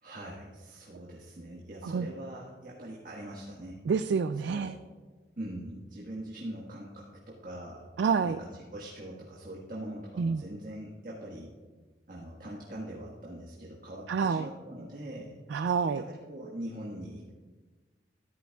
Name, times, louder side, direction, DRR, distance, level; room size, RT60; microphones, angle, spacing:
voice 1, 0.0-3.8 4.5-4.8 5.4-7.8 8.2-11.5 12.1-15.3 15.9-17.3, right 1 dB, 50° right, -4 dB, 1.5 m, -42 dB
voice 2, 3.9-4.8 8.0-8.4 10.2-10.4 14.1-14.5 15.5-16.0, right 5 dB, 70° right, 10 dB, 0.3 m, -28 dB
14.0 x 11.5 x 2.3 m, 1.3 s
head